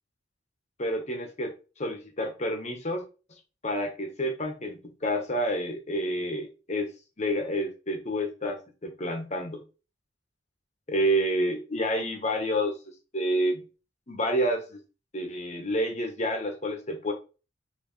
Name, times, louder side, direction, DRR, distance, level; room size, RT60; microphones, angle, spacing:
voice 1, 0.8-3.0 3.6-6.9 7.2-9.6 10.9-12.8 13.1-13.6 14.1-14.8 15.1-17.1, equal, 40° left, 3 dB, 1.1 m, -29 dB
5.5 x 3.0 x 3.1 m, 0.32 s
head